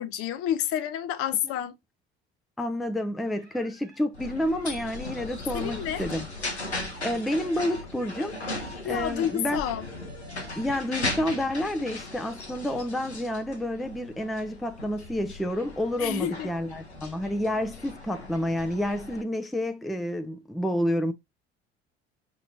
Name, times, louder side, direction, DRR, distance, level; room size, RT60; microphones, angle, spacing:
voice 1, 0.0-1.8 5.5-6.0 8.8-9.9 16.0-16.5, left 10 dB, 45° left, 0.6 m, -29 dB
voice 2, 2.6-6.3 7.0-8.4 8.8-9.6 10.6-21.1, left 1 dB, ahead, 0.4 m, -29 dB
sound 1, 3.2-10.9, right 3 dB, 85° right, 1.5 m, -49 dB
sound 2, 4.1-19.2, left 2 dB, 90° left, 0.7 m, -38 dB
6.1 x 2.9 x 2.9 m
figure-of-eight pair, 60°, 32 cm